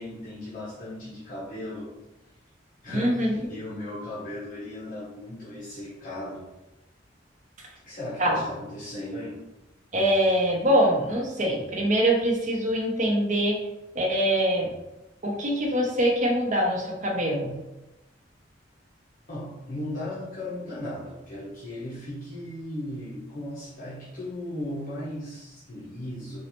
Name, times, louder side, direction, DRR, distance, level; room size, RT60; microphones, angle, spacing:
voice 1, 0.0-2.0 2.8-6.5 7.9-9.4 19.3-26.4, left 1 dB, 45° left, -9 dB, 0.8 m, -36 dB
voice 2, 2.9-3.6 8.2-8.4 9.9-13.6 13.9-14.7 15.2-17.5, equal, 40° right, -2 dB, 0.8 m, -24 dB
4.1 x 2.3 x 3.0 m, 0.99 s
head